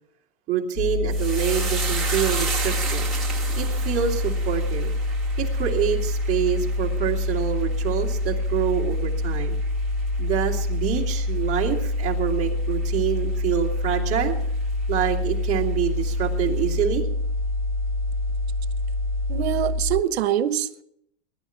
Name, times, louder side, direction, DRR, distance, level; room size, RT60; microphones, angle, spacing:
voice 1, 0.5-3.1 3.6-4.9 5.4-9.6 10.2-14.4 14.9-17.1, right 9 dB, 20° right, -2 dB, 2.3 m, -26 dB
sound 1, 0.8-20.0, left 1 dB, 45° left, 1.7 m, -26 dB
sound 2, 1.1-9.7 10.0-10.7 11.0-11.2, right 5 dB, ahead, 1.9 m, -34 dB
voice 2, 19.3-20.8, right 10 dB, 70° right, 13 dB, 1.1 m, -24 dB
20.5 x 11.5 x 5.7 m, 0.73 s
supercardioid pair, 175°, 33 cm